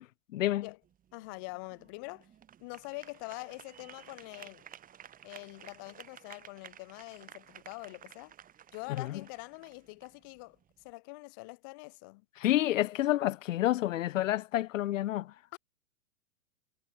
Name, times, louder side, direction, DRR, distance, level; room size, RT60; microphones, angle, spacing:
voice 1, 0.3-0.7 8.9-9.2 12.4-15.3, left 14 dB, 65° left, 0.9 m, -29 dB
sound 1, 0.8-10.9, right 9 dB, 20° right, 2.3 m, -54 dB
voice 2, 1.1-2.3 2.6-4.7 5.2-8.3 8.7-10.6 10.8-12.2 15.5-15.6, left 30 dB, 15° left, 0.3 m, -44 dB
hypercardioid pair, 125°, 42 cm